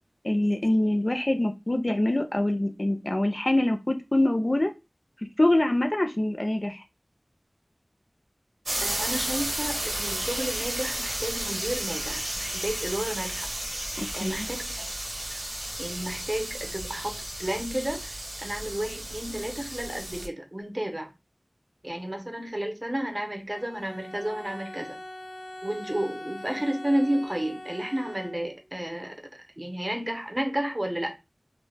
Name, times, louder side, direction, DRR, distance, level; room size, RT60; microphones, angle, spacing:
voice 1, 0.2-4.7 5.4-6.8 14.0-14.5, left 1 dB, 50° left, 0.4 m, -24 dB
sound 1, 8.6-20.3, right 1 dB, 80° right, 0.8 m, -33 dB
voice 2, 8.8-13.5 14.1-14.8 15.3-15.4 15.8-21.1 21.8-25.0 25.6-31.1, right 1 dB, 35° right, 0.6 m, -32 dB
Bowed string instrument, 23.5-28.7, left 1 dB, 90° left, 0.7 m, -42 dB
2.1 x 2.0 x 3.3 m
wide cardioid pair, 45°, 0 cm